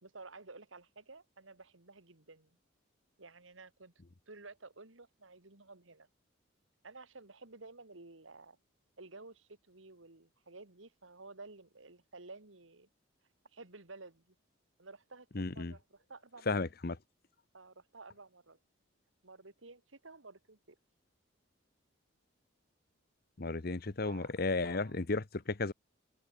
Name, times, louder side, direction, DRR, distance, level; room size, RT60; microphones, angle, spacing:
voice 1, 0.0-2.6 3.2-3.9 4.3-6.1 6.8-8.6 9.0-12.9 13.5-14.4 14.8-16.7 17.5-18.6 19.2-20.8 24.0-24.3 24.6-25.1, right 3 dB, 80° right, 2.3 m, -53 dB
voice 2, 15.3-15.7 16.5-17.0 23.4-25.7, left 3 dB, 50° left, 0.9 m, -34 dB
open air
head